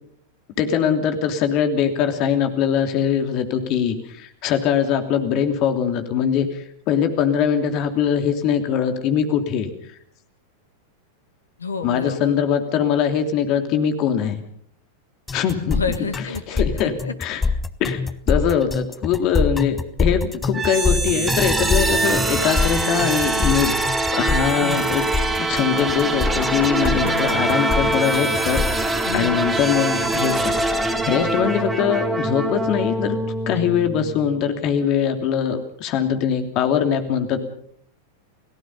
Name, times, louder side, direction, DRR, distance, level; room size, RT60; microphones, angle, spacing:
voice 1, 0.6-9.7 11.8-14.4 15.3-15.8 16.5-17.4 17.8-23.8 24.1-25.0 25.4-33.2 33.5-37.4, left 8 dB, 40° left, 7 dB, 3.0 m, -22 dB
voice 2, 11.6-12.3 15.7-17.1 22.9-23.0 24.5-25.0 27.0-27.5 29.1-29.4 33.5-33.7, left 5 dB, 75° left, 10 dB, 1.9 m, -29 dB
sound 1, 15.3-28.9, left 4 dB, 15° left, 1.3 m, -25 dB
sound 2, 20.5-34.4, right 2 dB, 10° right, 3.3 m, -23 dB
29.5 x 18.0 x 5.5 m, 0.65 s
figure-of-eight pair, 90°, 0 cm